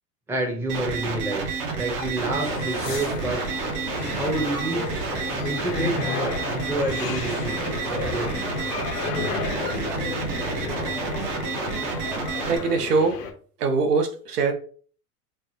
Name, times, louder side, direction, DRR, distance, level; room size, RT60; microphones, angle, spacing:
voice 1, 0.3-1.4 1.8-3.4 4.0-4.8 5.4-8.6, right 2 dB, 5° right, 0.6 m, -29 dB
sound 1, 0.7-12.6, right 4 dB, 55° right, 0.9 m, -30 dB
sound 2, 2.2-13.3, left 5 dB, 80° left, 0.7 m, -33 dB
voice 2, 12.5-13.2 13.6-14.5, right 4 dB, 80° right, 0.7 m, -22 dB
3.3 x 2.0 x 2.7 m
hypercardioid pair, 85°, 46 cm